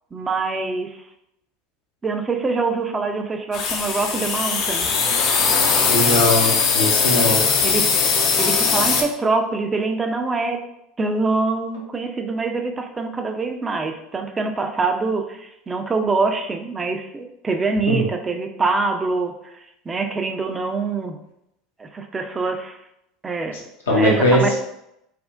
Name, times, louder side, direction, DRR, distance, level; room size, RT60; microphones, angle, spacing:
voice 1, 0.1-1.0 2.0-4.9 7.6-7.9 8.4-10.6 11.0-19.3 19.9-21.2 21.8-22.8 23.2-23.6 23.9-24.5, right 3 dB, 25° right, 5 dB, 0.4 m, -24 dB
sound 1, 3.5-9.0, left 5 dB, 55° left, 0.4 m, -20 dB
voice 2, 5.9-7.4 17.9-18.1 23.9-24.5, left 1 dB, 85° left, -2 dB, 0.7 m, -19 dB
3.3 x 2.1 x 2.4 m, 0.81 s
hypercardioid pair, 80°, 0 cm